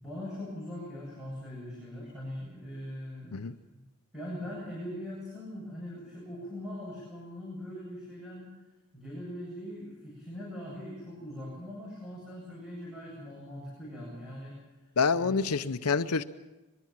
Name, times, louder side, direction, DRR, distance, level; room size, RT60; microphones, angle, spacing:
voice 1, 0.0-3.5 4.1-8.5 8.9-14.6 15.1-15.6, left 1 dB, 5° right, -6 dB, 7.9 m, -41 dB
voice 2, 15.0-16.2, left 5 dB, 90° left, 10 dB, 0.8 m, -27 dB
23.0 x 22.0 x 7.4 m, 1.1 s
head